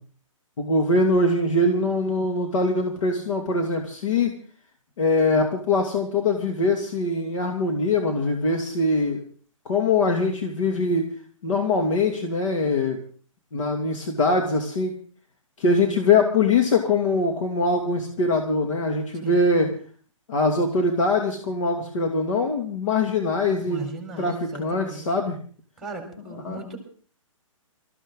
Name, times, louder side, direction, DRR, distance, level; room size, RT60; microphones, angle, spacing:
voice 1, 0.6-4.3 5.0-9.2 9.7-11.1 11.4-13.0 13.5-14.9 15.6-19.7 20.3-23.9 24.2-24.3 24.6-25.4 26.4-26.6, left 3 dB, 65° left, 2 dB, 2.6 m, -22 dB
voice 2, 19.2-19.6 23.7-25.1 25.8-26.8, right 3 dB, ahead, 3 dB, 3.9 m, -37 dB
21.5 x 14.5 x 3.9 m, 0.43 s
hypercardioid pair, 155°, 17 cm